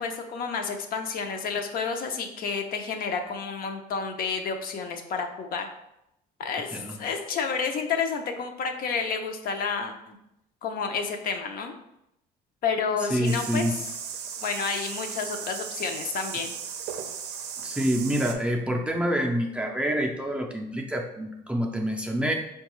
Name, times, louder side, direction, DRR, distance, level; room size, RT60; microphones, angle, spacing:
voice 1, 0.0-5.7 6.4-10.2 10.6-11.7 12.6-13.7 14.4-16.5, left 5 dB, 60° left, 4 dB, 0.5 m, -30 dB
voice 2, 13.1-13.8 17.6-22.3, equal, 5° right, 1 dB, 0.4 m, -27 dB
sound 1, 13.2-18.3, right 7 dB, 75° right, 0.5 m, -36 dB
4.6 x 2.3 x 3.0 m, 0.83 s
cardioid pair, 110°, 17 cm